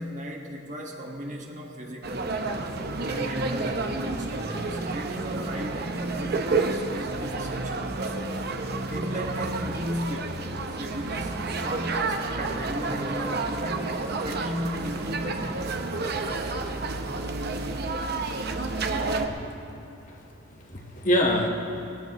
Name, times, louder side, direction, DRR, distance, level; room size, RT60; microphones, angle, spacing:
voice 1, 0.0-2.5 3.0-8.3 8.8-10.4 10.7-14.0 14.2-15.8, equal, 40° right, 0 dB, 1.5 m, -36 dB
sound 1, 2.0-19.3, right 3 dB, 55° right, 0.8 m, -30 dB
voice 2, 20.0-21.5, left 1 dB, 40° left, 1 dB, 1.3 m, -27 dB
19.0 x 15.0 x 3.0 m, 2.8 s
head